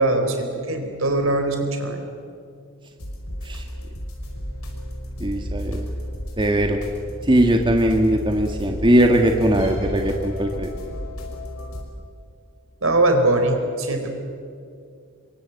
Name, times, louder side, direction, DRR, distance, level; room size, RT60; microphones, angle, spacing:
voice 1, 0.0-2.0 12.8-14.1, right 2 dB, 65° right, 5 dB, 4.2 m, -21 dB
sound 1, 3.0-11.8, equal, 80° left, 5.6 m, -32 dB
voice 2, 5.2-5.9 6.4-6.8 7.2-10.7, right 1 dB, 20° right, 3 dB, 1.6 m, -19 dB
27.0 x 23.5 x 8.3 m, 2.4 s
head